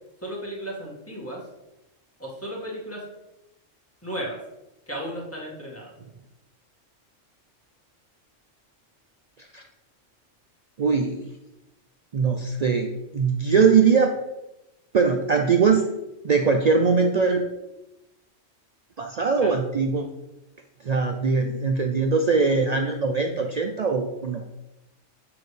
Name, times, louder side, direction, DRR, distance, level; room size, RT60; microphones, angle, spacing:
voice 1, 0.2-1.5 2.2-3.1 4.0-4.4 4.9-5.9 19.4-19.5, equal, 10° left, -4 dB, 1.7 m, -34 dB
voice 2, 10.8-11.2 12.1-14.1 14.9-15.9 16.2-17.4 19.0-20.0 20.8-24.4, right 5 dB, 85° right, 4 dB, 0.3 m, -21 dB
7.1 x 6.3 x 3.2 m, 0.95 s
omnidirectional pair, 1.3 m